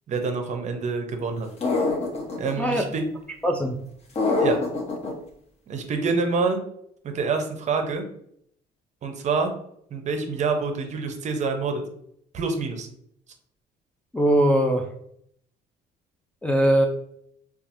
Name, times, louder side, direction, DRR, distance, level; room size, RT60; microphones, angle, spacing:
voice 1, 0.1-1.5 2.4-3.0 4.4-4.6 5.7-6.6 7.1-8.1 9.0-9.5 9.9-11.8 12.3-12.9, right 4 dB, 45° right, 5 dB, 0.6 m, -26 dB
sound 1, 1.6-2.5 4.2-5.1, left 3 dB, 40° left, 0.7 m, -24 dB
voice 2, 2.6-3.0 3.4-3.8 14.1-14.9 16.4-16.9, right 1 dB, 5° left, 0 dB, 0.3 m, -21 dB
2.8 x 2.3 x 2.6 m, 0.69 s
cardioid pair, 110°, 17 cm